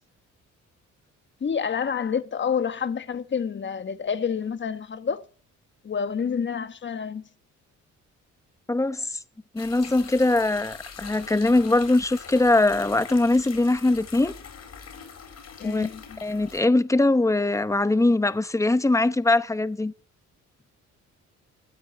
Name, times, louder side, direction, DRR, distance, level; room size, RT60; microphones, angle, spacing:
voice 1, 1.4-5.2 5.8-7.2 15.6-16.2, left 7 dB, 40° left, 1.4 m, -28 dB
voice 2, 8.7-9.2 9.5-14.3 15.6-15.9 16.2-19.9, left 2 dB, 10° left, 0.9 m, -22 dB
sound 1, 9.6-16.6, left 6 dB, 60° left, 4.6 m, -43 dB
14.0 x 9.0 x 7.6 m
cardioid pair, 90°, 30 cm